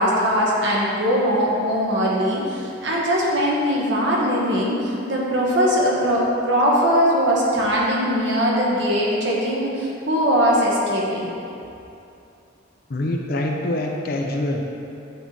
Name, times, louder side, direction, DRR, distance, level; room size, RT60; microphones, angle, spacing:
voice 1, 0.0-11.3, equal, 60° right, -4 dB, 1.0 m, -20 dB
voice 2, 12.9-14.6, left 1 dB, 50° left, 1 dB, 0.5 m, -25 dB
8.1 x 3.0 x 4.0 m, 2.7 s
head